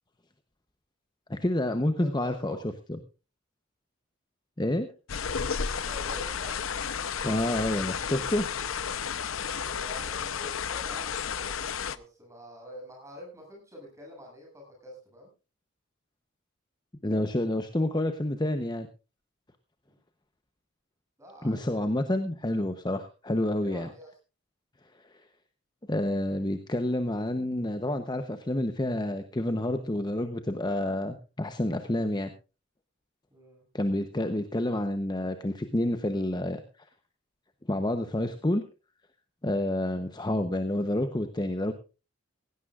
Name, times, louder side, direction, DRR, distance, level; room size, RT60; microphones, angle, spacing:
voice 1, 1.3-2.6 4.6-4.9 7.2-8.5 17.0-18.9 21.4-23.9 25.0-25.2 25.9-32.3 33.7-36.9 37.7-38.6 39.4-41.7, left 1 dB, 20° left, 8 dB, 0.8 m, -29 dB
voice 2, 2.0-2.6 5.8-6.6 9.5-15.3 19.9-20.0 21.2-22.0 23.6-24.1 33.3-33.6, left 1 dB, 15° right, -1 dB, 7.8 m, -47 dB
sound 1, 5.1-12.0, left 6 dB, 80° left, 0.8 m, -32 dB
17.0 x 16.0 x 2.4 m, 0.32 s
head